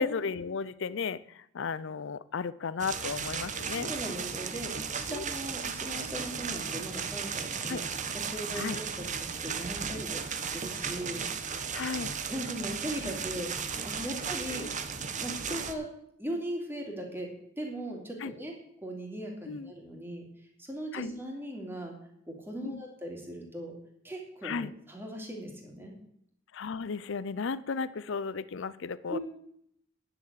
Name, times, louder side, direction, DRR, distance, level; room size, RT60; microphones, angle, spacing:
voice 1, 0.0-3.9 5.1-5.2 7.7-7.8 8.5-8.8 11.7-12.1 13.0-13.2 14.5-14.8 15.5-15.7 18.2-18.3 19.5-19.7 20.9-21.1 22.6-22.8 24.4-24.7 26.5-29.2, left 5 dB, 65° left, 17 dB, 0.5 m, -34 dB
sound 1, 2.8-15.7, right 6 dB, 40° right, 1.0 m, -35 dB
voice 2, 3.9-7.8 8.1-11.3 12.3-13.5 13.8-14.7 15.2-15.9 16.2-17.3 17.6-18.5 18.8-20.3 20.6-21.9 22.3-23.7 24.0-25.9 29.1-29.2, right 1 dB, 10° right, 1 dB, 2.8 m, -38 dB
10.5 x 7.1 x 8.2 m, 0.72 s
head